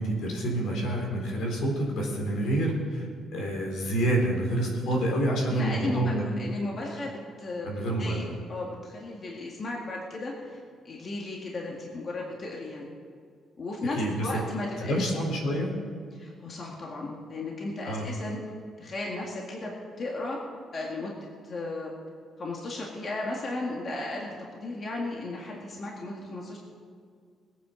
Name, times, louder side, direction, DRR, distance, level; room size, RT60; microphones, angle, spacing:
voice 1, 0.0-6.3 7.6-8.3 14.0-14.3 14.8-15.7 17.8-18.0, right 1 dB, 80° left, 0 dB, 4.0 m, -28 dB
voice 2, 5.4-7.7 8.0-8.2 8.5-12.9 13.6-15.0 15.6-15.9 16.1-18.4 18.8-19.7 20.0-20.4 20.7-21.9 22.4-26.6, left 2 dB, 35° left, -2 dB, 1.9 m, -35 dB
21.0 x 9.2 x 5.1 m, 2.2 s
cardioid pair, 155°, 0 cm